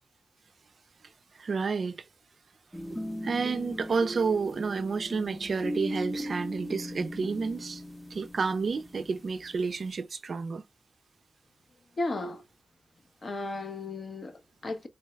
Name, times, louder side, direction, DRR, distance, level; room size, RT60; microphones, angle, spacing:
voice 1, 1.4-2.0 3.2-7.8 8.1-10.6, right 4 dB, 60° right, 0.3 m, -30 dB
sound 1, 2.7-9.9, equal, 5° right, 0.7 m, -38 dB
voice 2, 12.0-12.4 13.2-14.9, left 2 dB, 45° left, 0.7 m, -34 dB
3.9 x 2.1 x 3.2 m
wide cardioid pair, 115°, 0 cm